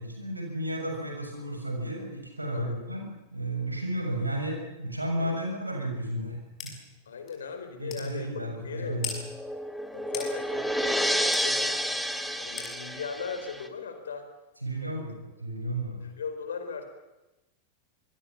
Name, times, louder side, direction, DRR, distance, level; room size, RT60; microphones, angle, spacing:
voice 1, 0.0-6.3 6.6-6.7 7.8-9.1 14.6-16.0, right 1 dB, 85° right, 3 dB, 6.9 m, -33 dB
sound 1, 6.6-6.7 7.3-7.4 7.9-8.1 9.0-9.2 10.1-10.3 11.3-11.5 12.6-12.7, left 7 dB, 30° left, 6.4 m, -36 dB
voice 2, 7.1-9.0 9.9-12.0 12.3-14.3 14.8-15.0 16.0-16.9, left 6 dB, 65° left, 8 dB, 4.5 m, -38 dB
sound 2, 8.8-13.7, equal, ahead, 1.7 m, -30 dB
25.5 x 21.0 x 7.3 m, 1.0 s
figure-of-eight pair, 90°, 0 cm